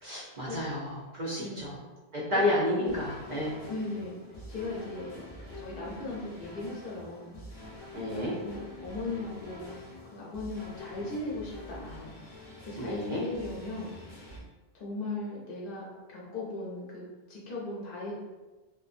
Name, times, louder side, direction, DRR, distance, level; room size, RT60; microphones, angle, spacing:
voice 1, 0.0-1.7 2.1-3.5 7.9-8.3 12.8-13.2, left 1 dB, 55° right, -6 dB, 0.6 m, -31 dB
voice 2, 1.4-1.8 2.8-2.9 3.7-4.2 4.5-5.2 5.5-7.3 8.1-9.7 10.1-12.1 12.6-13.9 14.7-18.2, left 2 dB, 65° left, -5 dB, 0.8 m, -38 dB
sound 1, 2.8-14.4, left 2 dB, 35° left, 0.5 m, -46 dB
2.5 x 2.1 x 2.4 m, 1.2 s
omnidirectional pair, 1.0 m